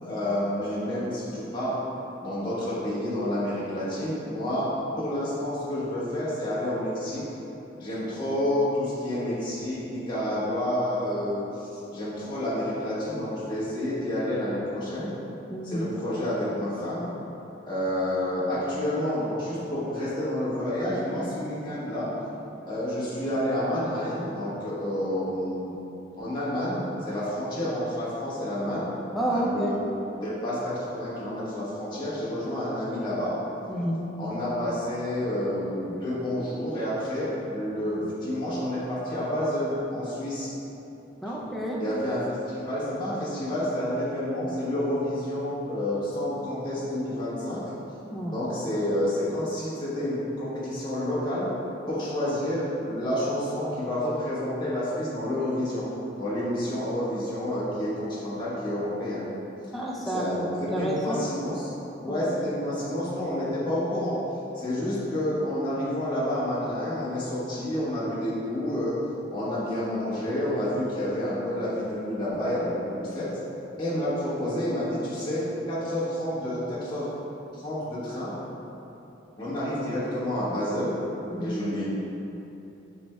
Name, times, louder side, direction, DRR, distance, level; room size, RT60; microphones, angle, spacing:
voice 1, 0.0-1.8 2.2-4.7 5.0-7.2 7.8-15.1 15.6-17.1 17.6-22.1 22.7-25.7 26.2-28.9 29.3-29.8 30.2-33.3 34.2-40.5 41.8-47.6 48.2-51.5 51.9-55.9 56.2-59.3 60.0-61.7 62.0-64.2 64.5-69.0 69.3-73.3 73.8-77.1 77.5-78.3 79.4-81.0 81.4-81.8, left 1 dB, 25° left, -10 dB, 1.1 m, -29 dB
voice 2, 15.5-15.9 29.1-29.8 33.7-34.2 41.2-41.8 48.1-48.4 59.7-61.2 62.1-62.2 81.3-81.6, right 1 dB, ahead, -4 dB, 0.3 m, -30 dB
6.8 x 3.3 x 2.2 m, 3.0 s
head